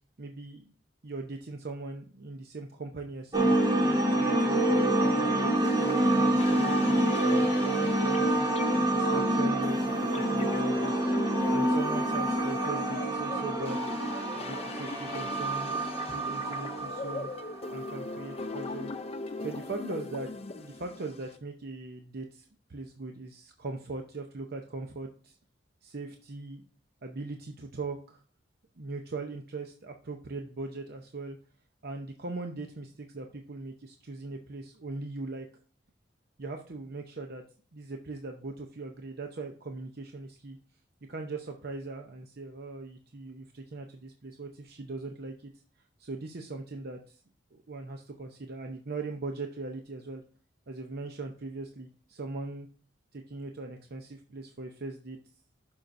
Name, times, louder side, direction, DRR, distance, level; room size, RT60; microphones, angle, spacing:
voice 1, 0.2-0.7 1.0-3.6 4.1-5.5 5.8-8.5 8.9-11.0 11.5-13.9 14.4-17.3 17.7-18.9 19.4-20.3 20.6-25.4 25.8-26.6 27.0-28.2 28.8-31.4 31.8-35.5 36.4-37.4 37.7-40.6 41.1-45.5 46.0-47.2 47.5-50.2 50.7-52.7 53.1-55.2, right 3 dB, 60° right, 4 dB, 0.8 m, -40 dB
sound 1, 3.3-17.9, right 1 dB, 20° right, 1.1 m, -27 dB
sound 2, 5.4-21.4, left 3 dB, 35° left, 0.5 m, -40 dB
11.5 x 5.6 x 2.6 m, 0.41 s
head